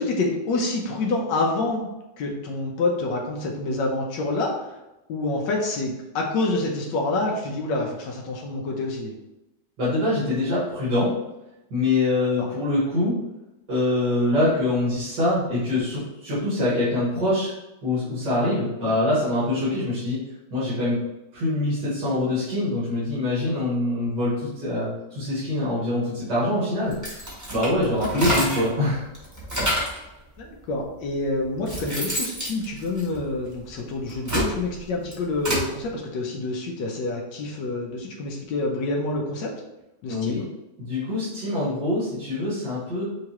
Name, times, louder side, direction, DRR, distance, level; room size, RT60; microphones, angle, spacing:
voice 1, 0.0-1.9 2.2-4.8 5.1-9.1 12.4-12.5 18.8-18.9 28.3-28.4 30.4-39.5 40.0-40.4, left 2 dB, 90° left, 0 dB, 1.4 m, -27 dB
voice 2, 9.8-11.2 11.7-13.2 13.7-17.5 17.8-20.2 20.5-21.0 21.3-26.9 27.5-29.1 40.1-40.4 40.8-43.0, left 1 dB, 75° right, -10 dB, 2.4 m, -24 dB
sound 1, 26.9-28.8 29.1-30.0 30.8-30.9 31.4-33.5 34.0-35.7, right 1 dB, 10° right, 1.1 m, -28 dB
5.7 x 2.8 x 2.9 m, 0.95 s
omnidirectional pair, 1.9 m